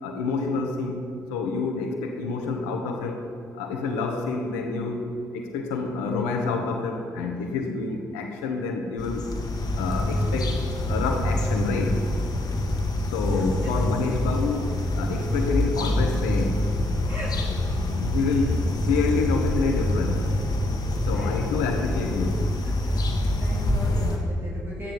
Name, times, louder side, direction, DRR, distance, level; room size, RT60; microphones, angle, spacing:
voice 1, 0.0-3.2 3.5-9.3 9.7-10.6 10.9-12.0 13.0-16.7 18.0-20.2 21.1-22.5, left 4 dB, 85° left, 4 dB, 1.3 m, -28 dB
sound 1, 9.0-24.2, left 1 dB, 50° left, 1.8 m, -26 dB
voice 2, 12.3-12.7 13.2-13.7 15.1-15.3 17.1-17.5 18.3-18.4 18.9-19.6 21.1-21.7 22.7-24.9, equal, 25° right, -6 dB, 3.3 m, -40 dB
12.5 x 10.0 x 4.7 m, 2.5 s
hypercardioid pair, 45°, 8 cm